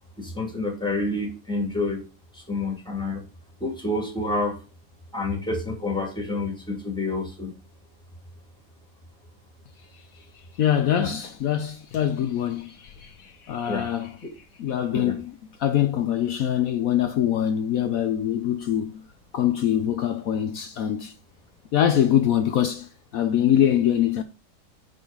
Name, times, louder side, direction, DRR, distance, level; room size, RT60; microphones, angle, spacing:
voice 1, 0.2-2.0 2.5-3.2 3.6-4.6 5.1-7.5 11.0-11.2 13.7-13.9 14.9-15.2, left 2 dB, 5° left, 2.2 m, -28 dB
voice 2, 10.6-14.1 14.6-15.3 15.6-19.0 19.3-21.1 21.7-22.9 23.1-24.2, left 10 dB, 70° left, 1.1 m, -23 dB
6.1 x 5.4 x 5.0 m
omnidirectional pair, 1.6 m